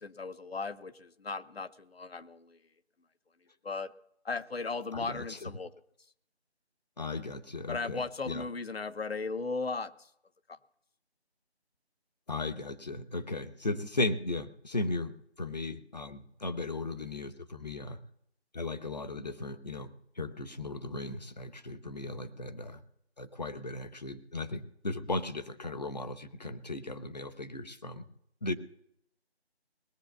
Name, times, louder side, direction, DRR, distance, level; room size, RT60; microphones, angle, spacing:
voice 1, 0.0-2.6 3.6-3.9 4.2-5.7 7.7-9.9 10.5-10.6 22.1-22.3, left 4 dB, 65° left, 13 dB, 0.9 m, -37 dB
voice 2, 4.9-5.5 7.0-8.5 12.3-18.0 18.5-19.9 20.2-22.8 23.2-28.0 28.4-28.5, left 2 dB, 40° left, 11 dB, 0.8 m, -36 dB
19.5 x 8.4 x 6.9 m, 0.76 s
figure-of-eight pair, 170°, 33 cm